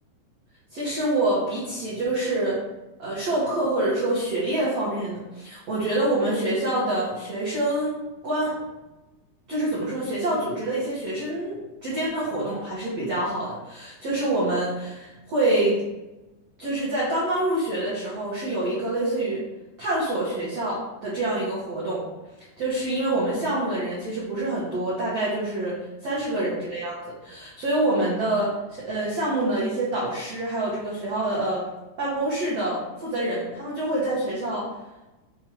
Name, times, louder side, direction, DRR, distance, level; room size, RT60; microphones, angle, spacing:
voice 1, 0.7-2.6 3.0-8.0 8.2-8.6 9.5-15.8 16.6-19.4 19.8-22.1 22.6-31.7 32.0-34.7, right 1 dB, 65° right, -8 dB, 1.5 m, -26 dB
6.3 x 3.5 x 4.5 m, 1.0 s
omnidirectional pair, 5.1 m